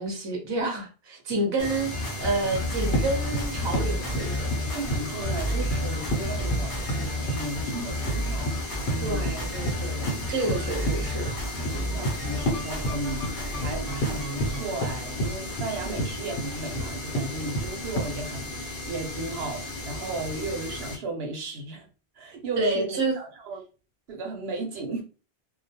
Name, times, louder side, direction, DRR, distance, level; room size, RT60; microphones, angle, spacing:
voice 1, 0.0-4.5 9.0-11.3 11.7-11.9 22.6-23.2, right 2 dB, 30° right, 0.7 m, -29 dB
sound 1, 1.6-21.0, left 1 dB, 60° left, 0.9 m, -36 dB
sound 2, 1.9-14.6, left 1 dB, 20° left, 0.6 m, -32 dB
Run, 2.3-18.3, right 1 dB, 80° left, 1.0 m, -33 dB
voice 2, 4.7-8.6 8.9-9.3 11.8-21.9 22.2-23.6 24.1-25.0, right 2 dB, 75° right, 0.9 m, -35 dB
2.2 x 2.2 x 2.7 m
omnidirectional pair, 1.1 m